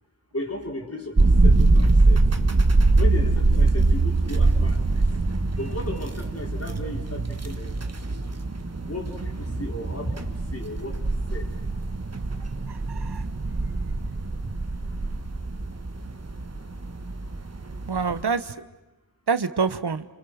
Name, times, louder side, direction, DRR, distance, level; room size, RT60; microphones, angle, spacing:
voice 1, 0.3-2.3 3.0-5.2 5.6-7.8 8.8-11.5 14.4-14.6, left 1 dB, 35° left, 1 dB, 4.6 m, -35 dB
sound 1, 1.2-18.2, right 2 dB, 40° right, 1.5 m, -23 dB
voice 2, 12.7-13.2 17.9-18.5 19.3-20.1, right 5 dB, 80° right, 13 dB, 1.1 m, -26 dB
30.0 x 27.5 x 6.4 m, 1.0 s
wide cardioid pair, 65°, 39 cm